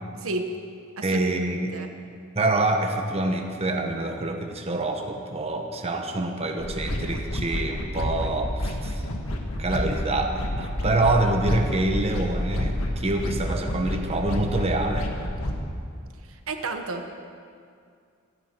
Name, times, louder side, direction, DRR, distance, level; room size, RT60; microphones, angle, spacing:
voice 1, 0.2-0.5 1.0-1.2 1.6-1.9 16.3-17.1, right 3 dB, 75° right, 5 dB, 1.2 m, -32 dB
voice 2, 1.0-1.8 2.3-9.0 9.6-15.1, right 2 dB, 30° right, 3 dB, 1.1 m, -26 dB
sound 1, 6.6-15.6, left 1 dB, 85° left, 1.6 m, -29 dB
25.5 x 9.6 x 4.5 m, 2.2 s
head